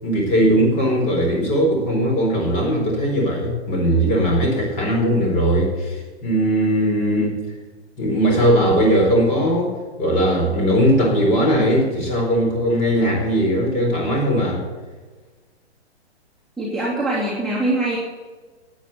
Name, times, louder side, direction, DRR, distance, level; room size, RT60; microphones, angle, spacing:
voice 1, 0.0-7.4 8.0-9.7 10.0-14.7, equal, 20° left, 1 dB, 4.3 m, -19 dB
voice 2, 16.6-18.0, right 2 dB, ahead, -8 dB, 2.9 m, -23 dB
13.0 x 9.2 x 8.2 m, 1.3 s
figure-of-eight pair, 125°, 34 cm